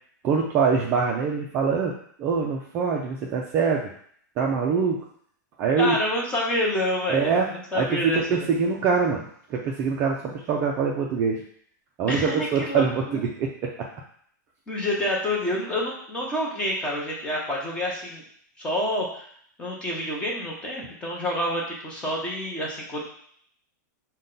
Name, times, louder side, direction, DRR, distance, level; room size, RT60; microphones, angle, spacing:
voice 1, 0.2-3.9 4.4-5.0 5.6-6.0 7.1-7.5 7.7-11.4 12.0-13.9, right 5 dB, 20° right, -1 dB, 0.3 m, -24 dB
voice 2, 5.8-8.5 12.1-13.2 14.7-18.2 18.6-19.2 19.6-23.0, left 1 dB, 10° left, -3 dB, 0.8 m, -28 dB
5.3 x 2.2 x 3.8 m, 0.63 s
supercardioid pair, 165°, 10 cm